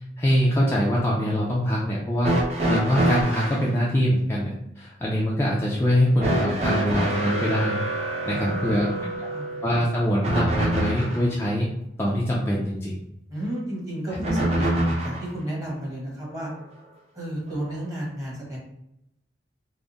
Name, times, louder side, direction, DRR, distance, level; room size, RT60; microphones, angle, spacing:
voice 1, 0.2-2.3 2.7-7.8 8.2-8.9 9.6-11.7 12.0-13.0, equal, 15° left, -5 dB, 0.4 m, -23 dB
sound 1, 2.2-3.7 6.2-11.3 14.2-15.3 16.5-16.6 17.7-17.8, right 1 dB, 35° right, 0.7 m, -26 dB
voice 2, 8.3-9.5 13.3-16.5 17.1-18.6, equal, 20° right, -4 dB, 1.2 m, -32 dB
3.5 x 2.1 x 3.9 m, 0.81 s
head